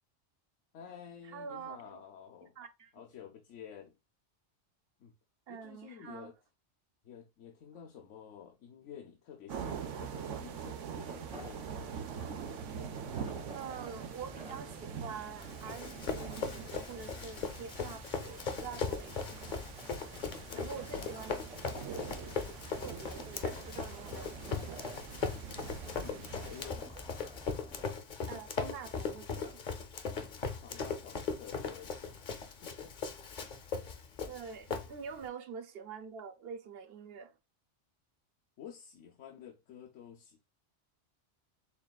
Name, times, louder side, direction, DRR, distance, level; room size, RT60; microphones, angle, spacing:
voice 1, 0.7-2.5 2.9-3.9 5.0-5.1 5.5-6.3 7.0-11.7 20.4-20.7 21.0-21.1 26.0-26.9 30.4-33.2 38.6-40.4, left 8 dB, 85° left, 1.0 m, -51 dB
voice 2, 1.2-2.0 2.4-2.9 5.5-6.3 13.5-19.4 20.5-21.4 21.8-22.0 22.8-24.9 28.2-29.6 34.3-37.4, right 6 dB, 65° right, 0.7 m, -46 dB
sound 1, 9.5-26.6, right 7 dB, 90° right, 1.0 m, -44 dB
sound 2, 11.0-27.9, equal, 10° right, 0.6 m, -51 dB
Run, 15.4-35.3, left 5 dB, 50° left, 0.7 m, -39 dB
7.0 x 2.4 x 2.3 m
omnidirectional pair, 1.2 m